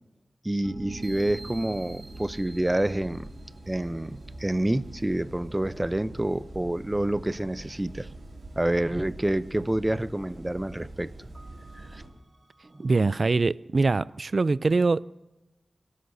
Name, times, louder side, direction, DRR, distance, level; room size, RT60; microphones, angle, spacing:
voice 1, 0.4-3.3 3.7-8.1 8.6-11.3 11.7-12.0, right 1 dB, 20° right, 0.6 m, -28 dB
sound 1, 0.6-4.6 5.0-8.2 8.6-8.7 9.1-10.2 10.5-10.6 11.3-13.2, right 3 dB, 40° right, 1.0 m, -47 dB
sound 2, 0.9-12.1, right 2 dB, 85° right, 4.1 m, -44 dB
voice 2, 12.8-15.1, right 3 dB, 60° right, 0.4 m, -23 dB
29.5 x 12.5 x 2.7 m
wide cardioid pair, 70°, 0 cm